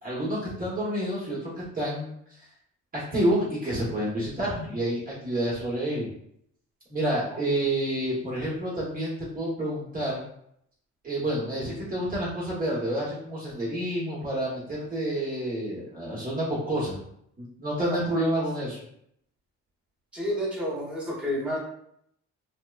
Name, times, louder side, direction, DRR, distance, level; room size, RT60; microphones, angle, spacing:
voice 1, 0.0-2.1 2.9-6.1 6.9-10.2 11.0-17.0 17.4-18.8, right 1 dB, 30° right, -7 dB, 1.0 m, -29 dB
voice 2, 20.1-21.6, equal, 5° right, -7 dB, 1.1 m, -30 dB
2.9 x 2.1 x 2.3 m, 0.71 s
cardioid pair, 90°, 30 cm